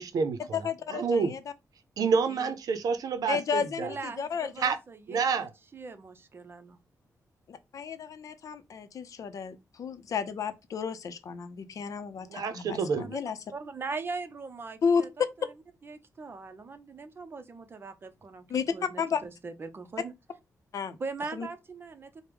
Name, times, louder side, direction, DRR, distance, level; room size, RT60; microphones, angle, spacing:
voice 1, 0.0-0.6 0.9-1.3 2.0-3.9 4.6-4.8 5.1-5.5 12.3-12.5 12.8-13.0, right 5 dB, 85° right, 0.6 m, -28 dB
voice 2, 0.5-1.4 2.3-2.5 3.3-4.7 7.5-12.4 13.1-13.4 14.8-15.0 18.5-18.6 19.0-19.2 20.7-21.0 21.3-21.5, left 6 dB, 65° left, 0.5 m, -32 dB
voice 3, 3.8-6.8 13.0-13.2 13.5-15.1 15.4-15.5 15.8-18.5 18.7-20.1 21.0-22.2, right 4 dB, 40° right, 0.6 m, -40 dB
4.6 x 2.1 x 3.3 m
wide cardioid pair, 120°, 6 cm